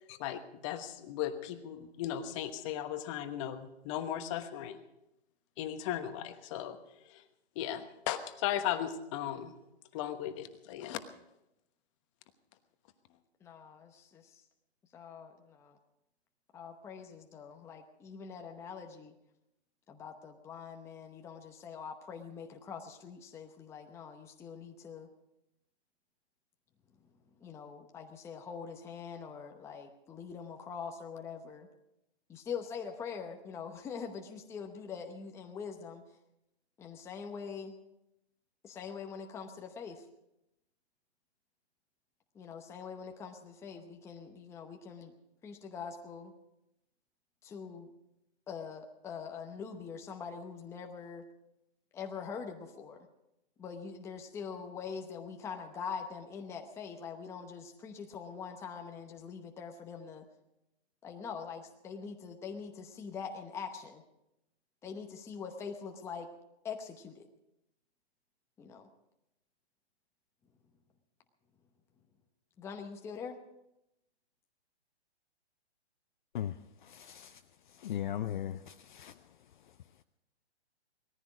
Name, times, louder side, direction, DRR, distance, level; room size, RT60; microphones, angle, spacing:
voice 1, 0.1-4.8 5.6-6.8 7.1-7.2 7.5-9.5 9.9-11.0, left 11 dB, 30° left, 9 dB, 1.2 m, -37 dB
voice 2, 13.4-14.3 14.9-15.8 16.5-19.1 19.9-25.1 27.4-31.7 32.3-36.0 36.8-37.7 38.6-40.0 42.3-45.1 45.4-46.3 47.4-47.9 48.5-51.2 51.9-53.0 53.6-60.2 61.0-64.0 64.8-66.3 66.6-67.3 68.6-68.9 72.6-73.3, left 6 dB, 10° left, 3 dB, 0.9 m, -43 dB
voice 3, 76.9-77.3 77.8-79.1, left 10 dB, 45° left, 9 dB, 0.6 m, -37 dB
19.5 x 14.5 x 4.9 m, 0.86 s
hypercardioid pair, 150°, 33 cm